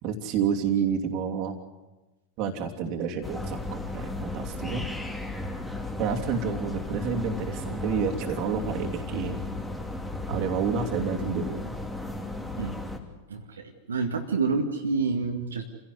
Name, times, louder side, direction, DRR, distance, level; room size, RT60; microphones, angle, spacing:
voice 1, 0.0-1.6 2.4-3.6 3.9-4.9 6.0-9.4 10.3-11.7, right 6 dB, 40° right, 3 dB, 3.0 m, -29 dB
sound 1, 3.2-13.0, left 2 dB, 5° left, 3.0 m, -35 dB
voice 2, 13.3-15.6, right 4 dB, 70° right, 2 dB, 2.1 m, -28 dB
28.0 x 17.0 x 8.1 m, 1.1 s
figure-of-eight pair, 90°, 0 cm